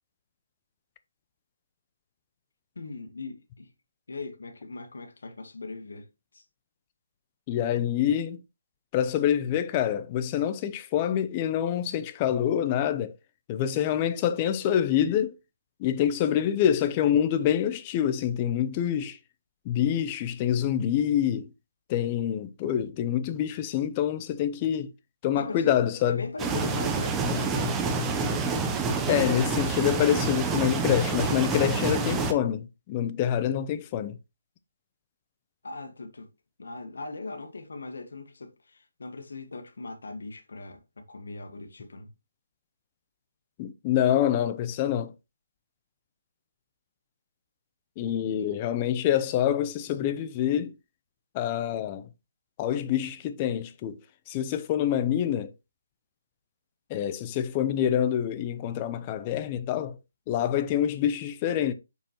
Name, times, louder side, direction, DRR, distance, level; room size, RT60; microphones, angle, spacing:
voice 1, 2.8-3.7 4.1-6.1 6.3-6.4 25.4-25.8 26.1-27.8 35.6-36.3 36.6-42.1 48.3-48.6, left 3 dB, 80° left, 1.6 m, -39 dB
voice 2, 7.5-8.4 8.9-13.1 13.5-15.3 15.8-19.2 19.7-21.5 21.9-24.9 25.2-26.2 29.1-34.2 43.6-45.1 48.0-50.7 51.3-52.1 52.6-54.0 54.3-55.5 56.9-60.0 60.3-61.7, left 10 dB, 25° left, 0.7 m, -26 dB
sound 1, 26.4-32.3, right 4 dB, 10° right, 0.7 m, -27 dB
8.7 x 5.6 x 3.0 m
hypercardioid pair, 160°, 0 cm